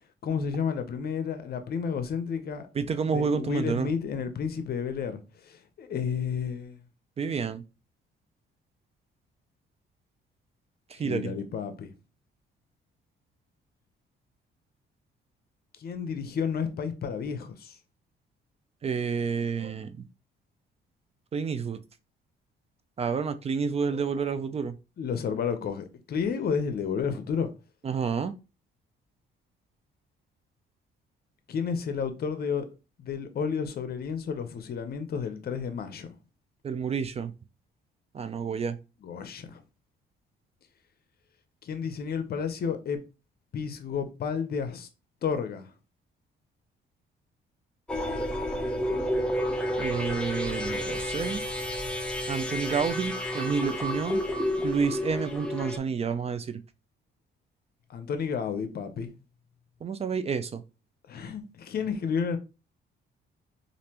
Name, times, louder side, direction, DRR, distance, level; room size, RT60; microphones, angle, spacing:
voice 1, 0.2-2.7 3.0-6.8 11.0-11.9 15.8-17.8 25.0-27.5 31.5-32.7 33.0-36.1 39.0-39.6 41.6-43.0 43.5-44.9 45.2-45.7 57.9-59.1 61.1-62.4, left 6 dB, 50° left, 0.6 m, -31 dB
voice 2, 2.7-3.9 7.2-7.6 10.9-11.3 18.8-20.1 21.3-21.8 23.0-24.8 27.8-28.3 36.6-37.3 38.1-38.8 49.8-51.4 52.3-54.2 54.6-56.6 59.8-60.6, right 5 dB, 30° right, 0.3 m, -29 dB
sound 1, 47.9-55.8, left 1 dB, 5° left, 0.7 m, -30 dB
3.3 x 2.5 x 2.8 m
cardioid pair, 90°, 20 cm